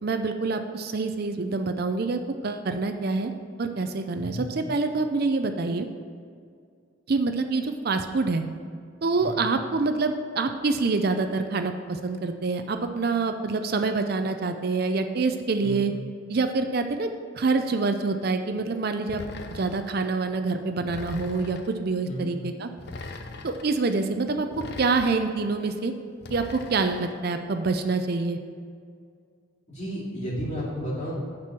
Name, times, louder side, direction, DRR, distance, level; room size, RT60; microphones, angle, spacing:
voice 1, 0.0-3.3 3.6-5.9 7.1-8.4 9.0-15.9 16.3-17.1 17.4-19.2 19.5-22.7 23.4-24.5 24.8-25.9 26.3-28.4, right 3 dB, 45° right, 7 dB, 0.4 m, -26 dB
sound 1, 19.1-20.0 20.9-21.8 22.8-23.7 24.5-25.4 26.2-27.2, left 2 dB, 50° left, 0.6 m, -40 dB
voice 2, 29.7-31.1, equal, 35° left, -5 dB, 2.5 m, -32 dB
9.4 x 4.5 x 7.3 m, 2.2 s
head